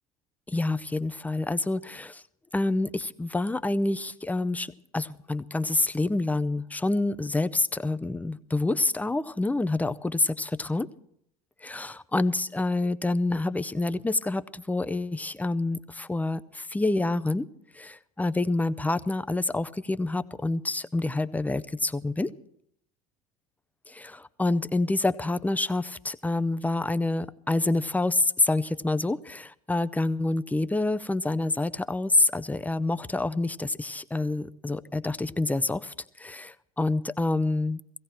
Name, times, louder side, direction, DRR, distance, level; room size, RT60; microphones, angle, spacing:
voice 1, 0.5-2.2 2.5-10.9 11.6-17.5 17.7-22.3 23.9-37.8, left 2 dB, 10° left, 14 dB, 0.6 m, -27 dB
17.0 x 16.5 x 4.4 m, 0.70 s
hypercardioid pair, 85°, 19 cm